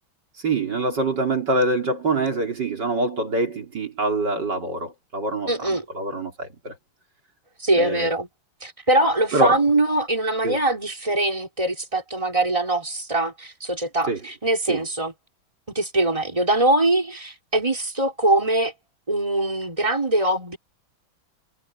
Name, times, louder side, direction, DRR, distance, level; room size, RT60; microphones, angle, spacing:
voice 1, 0.4-6.8 7.8-8.1 9.3-9.6 10.4-10.6 14.1-14.2 14.7-14.8, right 2 dB, 60° right, 4.1 m, -25 dB
voice 2, 5.5-5.8 7.6-8.3 8.6-15.1 15.7-18.7 19.1-20.6, right 2 dB, 15° right, 4.7 m, -22 dB
omnidirectional pair, 2.2 m